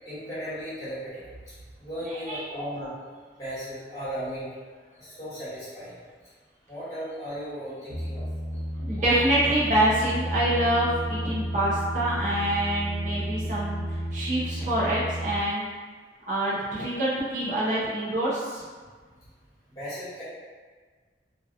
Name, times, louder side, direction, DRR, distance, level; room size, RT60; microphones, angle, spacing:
voice 1, 0.0-3.0 3.3-4.5 5.0-5.9 6.7-8.3 19.7-20.2, equal, 20° left, -13 dB, 1.2 m, -36 dB
voice 2, 2.1-2.4 8.8-13.8 14.1-15.6 16.3-18.6, right 1 dB, 45° right, -7 dB, 0.5 m, -26 dB
sound 1, 7.9-15.4, right 1 dB, 85° left, 0.5 m, -32 dB
2.7 x 2.2 x 2.3 m, 1.5 s
head